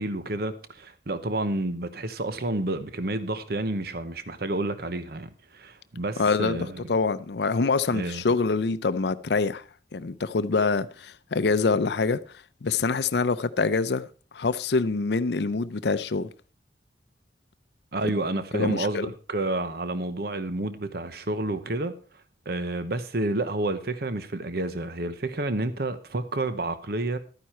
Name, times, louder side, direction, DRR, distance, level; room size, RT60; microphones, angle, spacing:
voice 1, 0.0-6.9 7.9-8.2 17.9-21.9 22.5-27.2, right 2 dB, 60° right, 1.0 m, -30 dB
voice 2, 6.2-9.6 9.9-12.2 12.6-14.1 14.3-16.3 18.5-19.1, left 4 dB, 70° left, 0.6 m, -25 dB
12.0 x 9.5 x 4.4 m
head